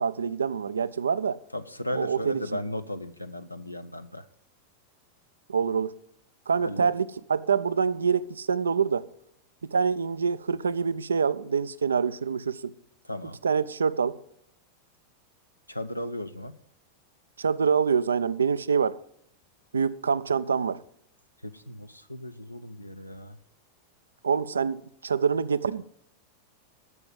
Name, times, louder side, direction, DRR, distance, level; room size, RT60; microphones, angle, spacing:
voice 1, 0.0-1.4 1.9-2.4 5.5-5.9 6.5-9.1 9.6-12.7 13.4-14.2 17.4-19.0 19.7-20.8 24.2-25.8, right 6 dB, 70° right, 0.4 m, -26 dB
voice 2, 1.5-4.2 6.6-6.9 13.0-13.4 15.7-16.6 21.4-23.4, left 1 dB, 90° left, 0.5 m, -36 dB
11.0 x 6.8 x 7.6 m
figure-of-eight pair, 90°, 0 cm